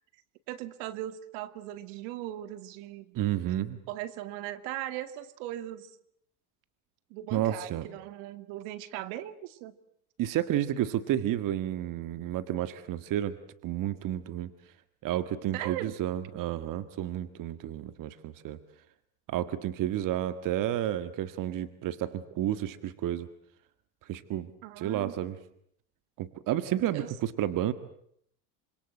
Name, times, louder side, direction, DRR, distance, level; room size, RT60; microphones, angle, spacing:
voice 1, 0.5-3.2 3.9-5.9 7.1-9.7 15.5-15.9 24.6-25.1 26.9-27.1, right 13 dB, 70° right, 12 dB, 2.3 m, -39 dB
voice 2, 3.1-3.8 7.3-7.9 10.2-13.4 13.6-14.5 15.0-18.6 19.3-23.3 24.1-24.5 24.8-25.4 26.2-27.7, right 12 dB, 50° right, 12 dB, 1.8 m, -31 dB
27.0 x 26.0 x 7.8 m, 0.68 s
supercardioid pair, 105°, 42 cm